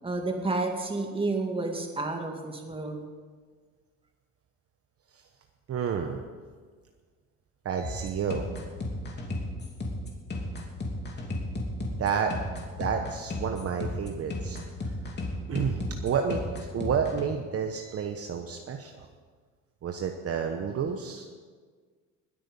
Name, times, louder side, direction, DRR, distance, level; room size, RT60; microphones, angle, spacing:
voice 1, 0.0-3.0, right 2 dB, 15° right, 3 dB, 2.2 m, -30 dB
voice 2, 5.7-6.2 7.6-8.5 12.0-12.4 12.8-14.9 15.5-19.1 19.8-21.4, right 6 dB, 45° right, 4 dB, 1.1 m, -30 dB
sound 1, 7.8-17.2, left 2 dB, 30° left, 3.0 m, -34 dB
20.0 x 8.9 x 5.4 m, 1.6 s
cardioid pair, 105°, 32 cm